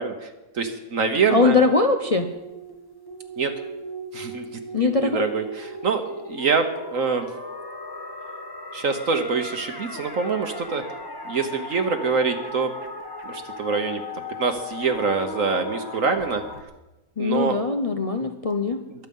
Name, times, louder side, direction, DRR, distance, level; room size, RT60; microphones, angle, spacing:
voice 1, 0.0-1.6 3.4-3.5 4.1-7.3 8.7-10.8 11.2-12.7 13.2-16.4 17.2-17.6 18.9-19.1, right 5 dB, 55° right, 6 dB, 1.3 m, -25 dB
voice 2, 1.3-2.3 4.7-5.3 17.2-18.8, left 4 dB, 65° left, 6 dB, 0.3 m, -21 dB
sound 1, 2.0-16.6, left 2 dB, 15° left, 0.9 m, -37 dB
22.0 x 8.1 x 5.4 m, 1.0 s
omnidirectional pair, 1.8 m